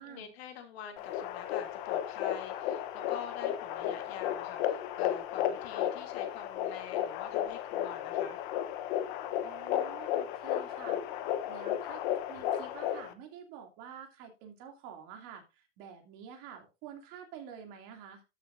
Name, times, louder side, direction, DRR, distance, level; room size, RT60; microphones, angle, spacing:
voice 1, 0.0-8.4, left 8 dB, 85° left, 2.7 m, -46 dB
sound 1, 1.0-13.1, left 11 dB, 55° left, 1.0 m, -34 dB
voice 2, 9.4-11.0 11.5-12.0 12.3-18.2, right 8 dB, 45° right, 2.6 m, -48 dB
13.0 x 6.9 x 2.6 m
supercardioid pair, 170°, 30 cm